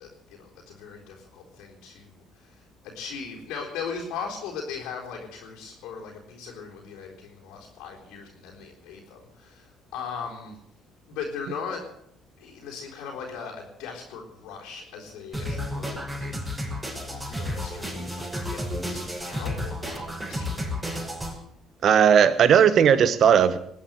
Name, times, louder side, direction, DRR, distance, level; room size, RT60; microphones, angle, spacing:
voice 1, 0.0-10.6 11.1-11.8 12.4-16.7 17.0-20.7, left 6 dB, 70° left, -3 dB, 4.0 m, -39 dB
sound 1, 15.3-21.3, left 1 dB, 20° right, 5.9 m, -32 dB
voice 2, 21.8-23.6, right 8 dB, 55° right, 16 dB, 1.1 m, -17 dB
20.5 x 8.6 x 7.9 m, 0.72 s
hypercardioid pair, 55°, 0 cm